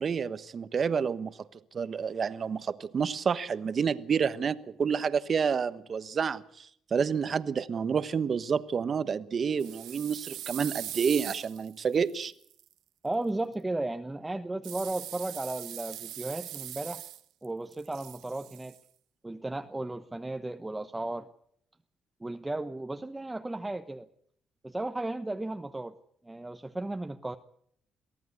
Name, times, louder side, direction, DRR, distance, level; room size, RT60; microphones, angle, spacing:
voice 1, 0.0-1.4 1.7-12.3, right 6 dB, 45° right, 1.2 m, -29 dB
sound 1, 9.6-12.6 14.6-17.5 17.7-18.8, right 13 dB, 90° right, 1.1 m, -41 dB
voice 2, 13.0-17.0 17.4-18.8 19.2-21.3 22.2-24.1 24.6-26.0 26.2-27.4, right 2 dB, 15° right, 1.1 m, -35 dB
23.5 x 15.5 x 8.2 m
cardioid pair, 90°, 0 cm